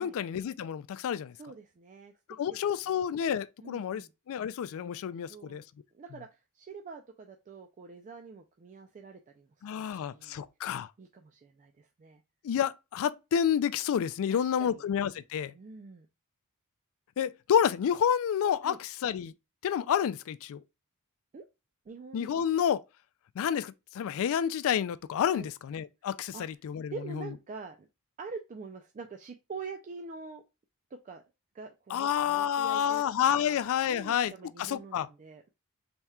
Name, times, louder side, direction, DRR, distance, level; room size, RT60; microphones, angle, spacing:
voice 1, 0.0-1.3 2.4-4.0 4.3-5.6 9.6-10.9 12.4-15.5 17.2-19.3 19.6-20.6 22.1-22.8 23.4-27.2 31.9-34.3 34.6-35.1, left 8 dB, 65° left, 0.3 m, -29 dB
voice 2, 1.3-2.1 2.5-2.6 2.9-3.0 3.6-4.1 5.3-5.6 5.9-9.5 9.8-10.4 11.0-12.2 14.3-14.8 15.5-16.1 18.6-18.8 21.3-21.4 21.9-22.4 25.3-25.5 26.3-26.5 26.9-27.9 28.2-30.4 31.0-31.2 31.5-33.0 33.4-35.5, right 4 dB, 35° right, 0.3 m, -45 dB
4.2 x 3.5 x 2.2 m
head